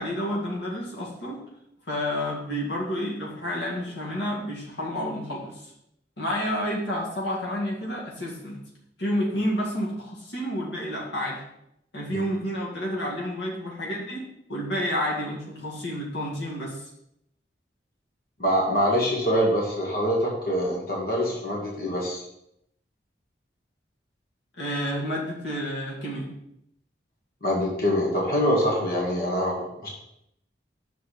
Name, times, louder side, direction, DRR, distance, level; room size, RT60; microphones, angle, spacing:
voice 1, 0.0-1.4 1.9-5.7 6.2-8.6 9.0-11.4 11.9-16.9 24.6-26.3, equal, 75° left, -3 dB, 1.9 m, -30 dB
voice 2, 18.4-22.2 27.4-29.9, equal, 55° left, -3 dB, 1.9 m, -24 dB
6.6 x 4.6 x 5.8 m, 0.78 s
head